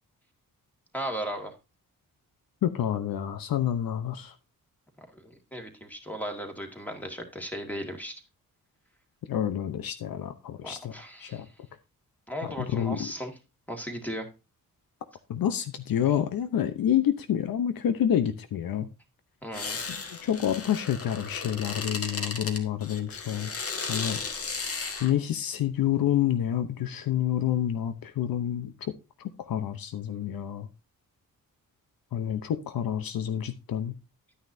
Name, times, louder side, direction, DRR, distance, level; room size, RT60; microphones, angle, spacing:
voice 1, 0.9-1.5 5.2-8.1 10.6-11.4 12.3-13.3 13.7-14.3 19.4-19.8, equal, 5° left, 1.9 m, -36 dB
voice 2, 2.6-4.3 9.2-11.5 12.4-13.1 15.3-18.9 19.9-23.5 23.9-24.2 25.0-28.9 29.4-30.7 32.1-33.9, left 10 dB, 75° left, 0.9 m, -28 dB
sound 1, 19.5-25.1, left 4 dB, 40° left, 1.5 m, -35 dB
11.0 x 9.6 x 2.7 m
wide cardioid pair, 170°, 35 cm